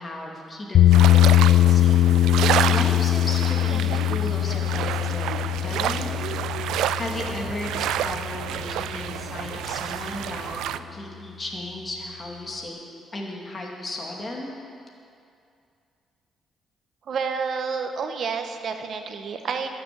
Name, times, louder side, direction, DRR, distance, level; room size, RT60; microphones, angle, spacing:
voice 1, 0.0-6.5 6.9-12.8 13.1-14.5, left 1 dB, 30° left, -1 dB, 2.5 m, -35 dB
sound 1, 0.7-8.8, left 13 dB, 65° left, 0.5 m, -21 dB
sound 2, 0.9-10.8, right 11 dB, 85° right, 0.3 m, -29 dB
voice 2, 17.1-19.7, right 5 dB, 60° right, 6 dB, 1.1 m, -29 dB
12.5 x 7.0 x 9.4 m, 2.5 s
cardioid pair, 90°, 0 cm